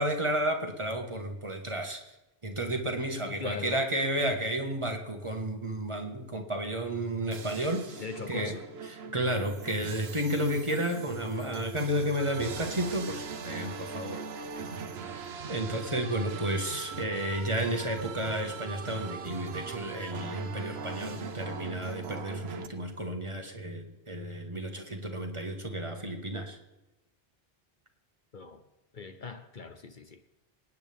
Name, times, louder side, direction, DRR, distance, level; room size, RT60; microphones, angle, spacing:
voice 1, 0.0-2.0 2.4-8.5 8.9-14.7 15.5-26.6, right 1 dB, 30° right, 3 dB, 1.7 m, -32 dB
voice 2, 3.3-3.8 8.0-8.6 9.2-9.3 28.3-28.6 28.9-30.2, left 4 dB, 55° left, 7 dB, 1.0 m, -40 dB
sound 1, 7.3-22.7, right 5 dB, 85° right, 1.1 m, -40 dB
27.5 x 9.6 x 3.6 m, 1.0 s
omnidirectional pair, 1.0 m